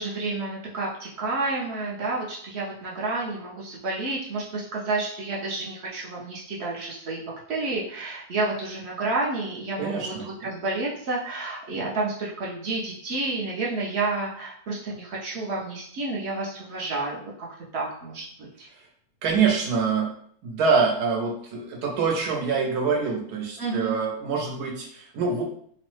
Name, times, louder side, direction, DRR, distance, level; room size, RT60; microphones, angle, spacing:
voice 1, 0.0-7.2 7.5-17.5 17.7-18.7 23.6-24.0, right 3 dB, 60° right, -4 dB, 0.7 m, -30 dB
voice 2, 9.8-10.3 19.2-20.1 20.4-25.4, right 5 dB, 80° right, 1 dB, 1.2 m, -25 dB
3.0 x 2.0 x 3.0 m, 0.63 s
omnidirectional pair, 1.7 m